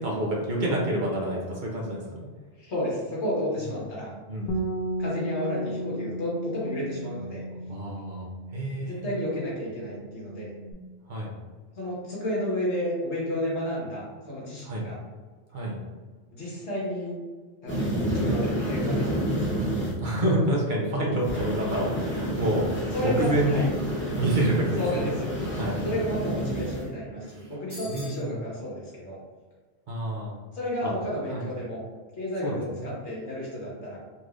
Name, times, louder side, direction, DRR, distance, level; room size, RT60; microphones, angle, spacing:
voice 1, 0.0-2.3 4.3-4.6 7.5-9.0 11.1-11.3 14.6-14.9 15.5-15.8 17.9-18.2 20.0-22.7 23.0-23.7 24.1-25.1 25.6-25.9 27.2-27.5 27.8-28.3 29.9-30.4 30.8-30.9 31.3-31.5 32.4-32.9, right 1 dB, 50° right, -3 dB, 0.8 m, -28 dB
voice 2, 2.5-4.1 5.0-7.4 8.8-10.5 11.7-15.0 16.3-17.2 17.6-19.6 22.9-23.7 24.7-25.3 25.8-29.2 30.5-31.8 32.2-34.0, left 1 dB, 80° left, -6 dB, 1.6 m, -31 dB
Bass guitar, 4.5-10.7, right 1 dB, 60° left, 0.7 m, -35 dB
sound 1, 17.7-19.9 21.3-26.8, equal, 10° left, 0.8 m, -29 dB
sound 2, 27.7-28.3, left 1 dB, 20° right, 1.5 m, -43 dB
4.0 x 3.2 x 2.5 m, 1.4 s
omnidirectional pair, 1.1 m